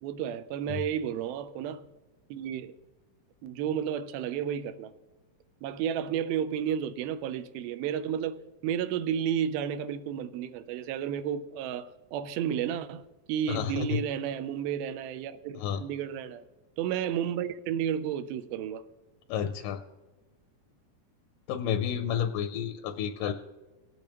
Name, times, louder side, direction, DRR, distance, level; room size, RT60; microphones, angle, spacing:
voice 1, 0.0-1.8 2.3-2.7 3.4-4.9 5.6-16.4 16.8-18.8, right 9 dB, 85° right, 2.5 m, -32 dB
voice 2, 13.5-14.0 15.6-15.8 19.3-19.8 21.5-23.3, left 8 dB, 80° left, 2.0 m, -30 dB
20.0 x 8.4 x 3.0 m
omnidirectional pair, 4.2 m